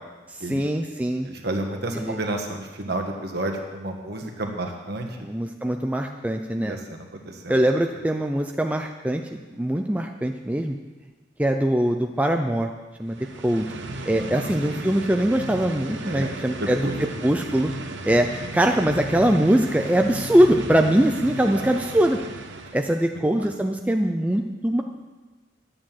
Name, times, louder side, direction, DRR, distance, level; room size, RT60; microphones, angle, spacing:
voice 1, 0.3-1.3 1.9-2.2 5.2-6.8 7.5-10.8 11.4-12.7 13.0-13.7 14.1-16.9 17.2-17.7 18.0-22.2 22.7-24.8, right 1 dB, 10° right, 4 dB, 0.5 m, -22 dB
voice 2, 1.2-5.2 6.6-7.5 14.2-14.5 16.0-16.9 21.5-21.7 23.4-23.5, right 1 dB, 55° right, 3 dB, 1.7 m, -31 dB
sound 1, 13.0-23.1, right 2 dB, 70° right, 1.2 m, -35 dB
11.0 x 8.8 x 7.5 m, 1.3 s
head